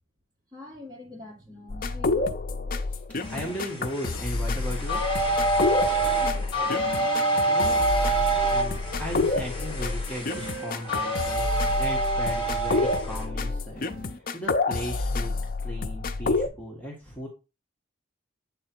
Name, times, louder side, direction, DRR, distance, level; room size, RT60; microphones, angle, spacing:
voice 1, 0.5-2.4 6.0-6.9, left 2 dB, 20° right, 1.9 m, -44 dB
sound 1, 1.7-16.5, left 3 dB, 45° left, 0.5 m, -29 dB
sound 2, 3.2-13.2, right 2 dB, 25° left, 1.6 m, -27 dB
voice 2, 3.3-5.0 7.5-7.9 8.1-11.5 11.7-13.9 14.3-17.3, equal, 10° left, 1.4 m, -37 dB
Wind instrument woodwind instrument, 6.6-9.9 10.3-14.1, right 3 dB, 60° right, 1.9 m, -44 dB
8.0 x 3.4 x 4.4 m
head